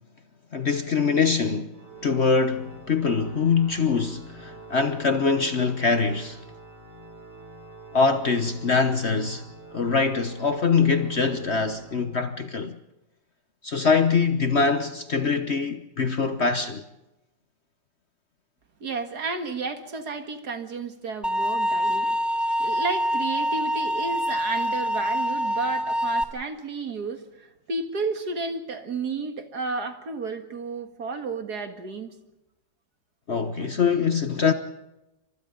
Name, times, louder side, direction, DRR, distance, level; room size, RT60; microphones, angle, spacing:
voice 1, 0.5-1.7 2.0-6.4 7.9-9.4 9.7-12.7 13.6-16.9 33.3-34.5, left 5 dB, 45° left, 1.1 m, -23 dB
Organ, 1.7-12.6, right 2 dB, 35° right, 4.6 m, -46 dB
voice 2, 18.8-22.2 22.6-32.1, right 4 dB, 60° right, 2.3 m, -32 dB
sound 1, 21.2-26.2, equal, ahead, 0.9 m, -25 dB
29.5 x 25.5 x 3.9 m
omnidirectional pair, 1.9 m